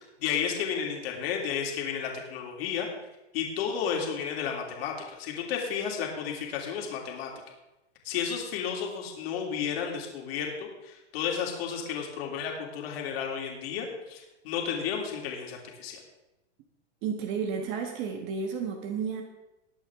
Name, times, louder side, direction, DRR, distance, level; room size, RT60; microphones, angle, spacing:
voice 1, 0.2-2.9 3.3-7.3 8.0-16.0, left 7 dB, 60° left, 0 dB, 3.4 m, -32 dB
voice 2, 17.0-19.2, right 6 dB, 35° right, 4 dB, 1.5 m, -32 dB
21.0 x 8.1 x 3.7 m, 0.98 s
supercardioid pair, 150°, 34 cm